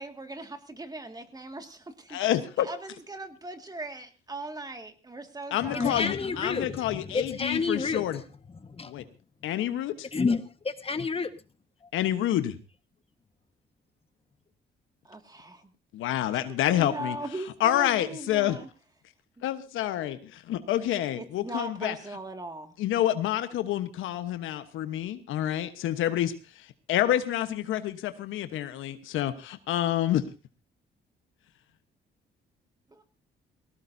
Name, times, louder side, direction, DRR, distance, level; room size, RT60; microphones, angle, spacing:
voice 1, 0.0-2.2 2.6-6.1 15.0-15.7 16.8-18.7 21.1-22.7 32.9-33.0, right 2 dB, 20° right, 2.1 m, -39 dB
voice 2, 2.1-2.7 5.5-8.2 8.9-9.0 9.4-10.1 11.9-12.5 15.9-17.2 17.6-18.6 19.4-22.0 22.8-30.2, left 12 dB, 90° left, 1.2 m, -28 dB
voice 3, 5.6-8.0 8.5-9.0 10.1-11.3, left 4 dB, 30° left, 1.4 m, -30 dB
19.5 x 17.5 x 2.7 m
cardioid pair, 90°, 20 cm